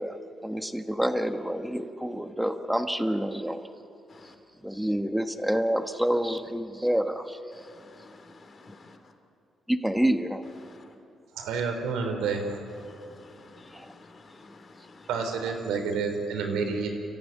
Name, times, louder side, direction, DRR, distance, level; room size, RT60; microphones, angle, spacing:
voice 1, 0.0-3.6 4.6-7.4 9.7-10.4 13.7-13.9, equal, 5° right, 7 dB, 1.4 m, -28 dB
voice 2, 7.7-9.0 12.8-15.1, left 3 dB, 40° left, 6 dB, 2.8 m, -51 dB
voice 3, 11.4-12.6 15.1-16.9, right 5 dB, 90° right, 4 dB, 3.9 m, -29 dB
29.5 x 14.5 x 9.6 m, 2.7 s
cardioid pair, 90°, 0 cm